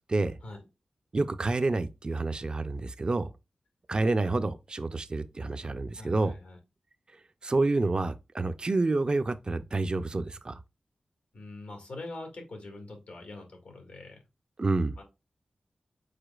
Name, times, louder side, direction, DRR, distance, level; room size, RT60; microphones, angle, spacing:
voice 1, 1.1-3.3 3.9-6.3 7.4-10.6 14.6-15.0, right 3 dB, 40° right, 0.4 m, -28 dB
voice 2, 6.0-6.6 11.3-14.2 15.0-15.1, left 2 dB, 85° left, 1.8 m, -43 dB
4.9 x 4.1 x 2.3 m
wide cardioid pair, 65°, 2 cm